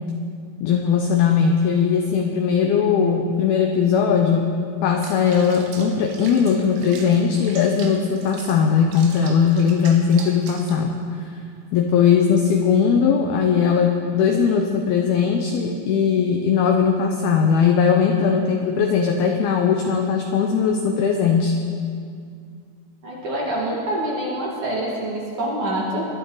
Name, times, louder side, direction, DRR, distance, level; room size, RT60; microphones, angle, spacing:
voice 1, 0.6-4.5 4.8-11.0 11.7-21.6, left 6 dB, 80° left, 3 dB, 2.2 m, -19 dB
Water / Bathtub (filling or washing), 5.0-10.8, right 5 dB, 90° right, 3.6 m, -40 dB
voice 2, 23.0-26.1, right 1 dB, 50° right, -4 dB, 2.6 m, -26 dB
21.0 x 12.0 x 3.9 m, 2.2 s
omnidirectional pair, 5.3 m